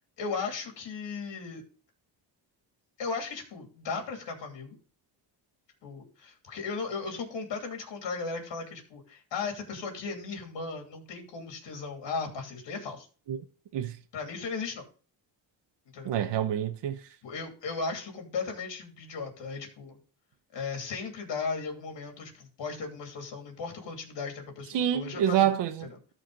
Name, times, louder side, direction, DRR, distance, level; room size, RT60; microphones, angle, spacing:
voice 1, 0.2-1.6 3.0-4.8 5.8-13.1 14.1-14.8 15.9-16.2 17.2-20.0 20.5-25.5 25.8-26.0, left 4 dB, 80° left, 2.8 m, -36 dB
voice 2, 16.0-17.0 24.7-26.1, right 10 dB, 75° right, 0.9 m, -27 dB
13.5 x 4.6 x 3.9 m
cardioid pair, 85°, 43 cm